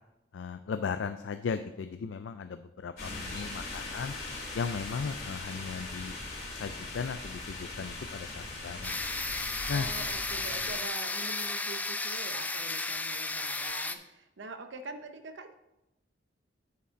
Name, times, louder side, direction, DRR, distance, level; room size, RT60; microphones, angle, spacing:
voice 1, 0.3-4.1 4.5-6.1 6.6-9.1 9.7-9.9, left 5 dB, 85° left, 9 dB, 0.4 m, -36 dB
sound 1, 3.0-10.7, left 2 dB, 55° left, 2.4 m, -40 dB
sound 2, 8.8-13.9, left 3 dB, 10° left, 0.3 m, -34 dB
voice 2, 9.7-15.5, right 3 dB, 75° right, 8 dB, 0.8 m, -44 dB
8.2 x 5.1 x 5.0 m, 0.93 s
head